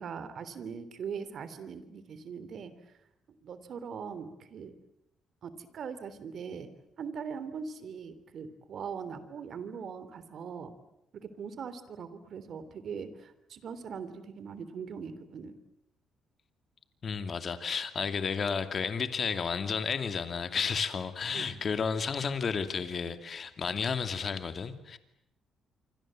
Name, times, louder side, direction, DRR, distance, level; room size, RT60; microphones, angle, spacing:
voice 1, 0.0-3.0 3.4-4.7 5.4-6.7 7.0-10.7 11.1-15.6 21.3-21.6, right 6 dB, 60° right, 3.2 m, -41 dB
voice 2, 17.0-25.0, left 6 dB, 45° left, 2.5 m, -32 dB
27.0 x 25.5 x 7.7 m
cardioid pair, 90°, 0 cm